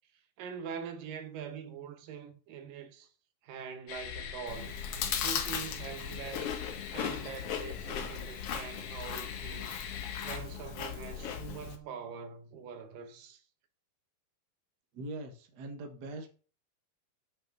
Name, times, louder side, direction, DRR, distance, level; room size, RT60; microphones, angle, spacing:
voice 1, 0.4-3.1 3.4-4.8 5.2-6.6 6.9-9.8 10.2-13.4, right 7 dB, 80° right, 2.8 m, -43 dB
sound 1, 3.9-10.4, left 7 dB, 80° left, 3.0 m, -44 dB
Chewing mastication, 4.5-11.8, left 8 dB, 65° left, 1.6 m, -37 dB
voice 2, 14.9-16.4, right 2 dB, 45° right, 1.3 m, -42 dB
7.6 x 5.9 x 5.9 m
omnidirectional pair, 3.8 m